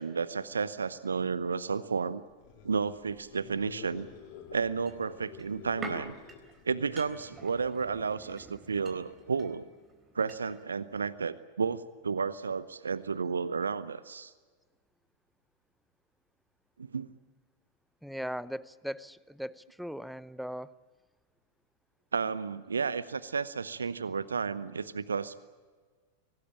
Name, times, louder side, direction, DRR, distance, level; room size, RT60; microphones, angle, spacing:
voice 1, 0.0-2.2 2.6-4.1 4.5-6.2 6.6-9.6 10.1-14.3 16.8-17.1 22.1-25.4, right 5 dB, 75° right, 17 dB, 0.8 m, -32 dB
sound 1, 2.3-7.4, left 8 dB, 45° left, 4.3 m, -50 dB
sound 2, 4.9-10.7 10.9-11.0, right 3 dB, 20° right, 3.7 m, -48 dB
voice 2, 18.0-20.7, equal, ahead, 19 dB, 0.7 m, -39 dB
25.0 x 18.5 x 8.7 m, 1.5 s
figure-of-eight pair, 90°, 0 cm